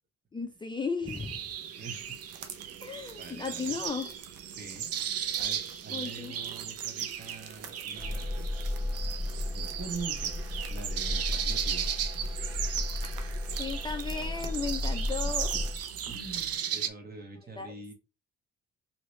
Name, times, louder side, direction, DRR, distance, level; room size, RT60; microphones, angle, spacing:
voice 1, 0.3-1.4 2.8-4.1 5.9-6.4 12.7-15.7 17.2-17.3 17.6-17.7, left 5 dB, 15° left, 4 dB, 0.4 m, -36 dB
sound 1, 1.1-16.9, right 9 dB, 55° right, 0.5 m, -36 dB
voice 2, 1.8-2.2 2.7-3.9 4.5-4.9 5.3-8.5 9.5-10.3 10.7-11.9 15.2-15.4 16.1-17.9, right 4 dB, 30° right, 4 dB, 1.1 m, -44 dB
sound 2, 1.8-16.6, right 7 dB, 90° right, 0.7 m, -50 dB
sound 3, 8.0-15.8, left 2 dB, 5° right, 1.0 m, -34 dB
2.9 x 2.8 x 3.1 m, 0.33 s
cardioid pair, 90°, 30 cm